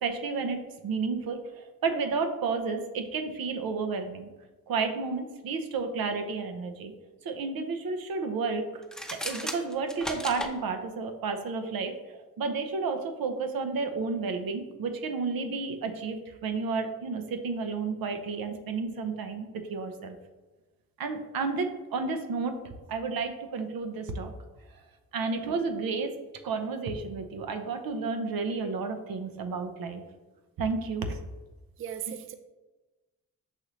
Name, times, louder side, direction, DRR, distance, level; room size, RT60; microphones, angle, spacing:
voice 1, 0.0-4.3 4.7-6.9 7.2-8.8 9.1-20.2 21.0-22.6 22.9-24.3 25.1-26.1 26.4-30.0 30.6-31.2, right 4 dB, 70° right, 6 dB, 0.7 m, -31 dB
sound 1, 8.8-10.5, equal, ahead, 0.7 m, -35 dB
voice 2, 31.8-32.3, right 10 dB, 35° right, 9 dB, 0.4 m, -37 dB
6.5 x 2.7 x 3.0 m, 1.2 s
supercardioid pair, 40°, 37 cm